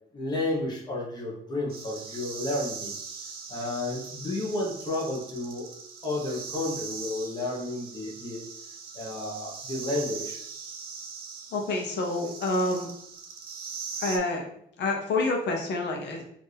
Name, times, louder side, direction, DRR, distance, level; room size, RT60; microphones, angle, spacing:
voice 1, 0.1-3.0 3.5-5.7 6.0-8.4 8.9-10.4, left 2 dB, 25° left, -3 dB, 1.1 m, -32 dB
sound 1, 1.7-14.2, right 5 dB, 60° right, 0.6 m, -41 dB
voice 2, 11.5-12.9 14.0-14.5 14.8-16.2, left 2 dB, 80° left, 1 dB, 0.8 m, -28 dB
4.3 x 2.7 x 3.3 m, 0.70 s
cardioid pair, 145°, 18 cm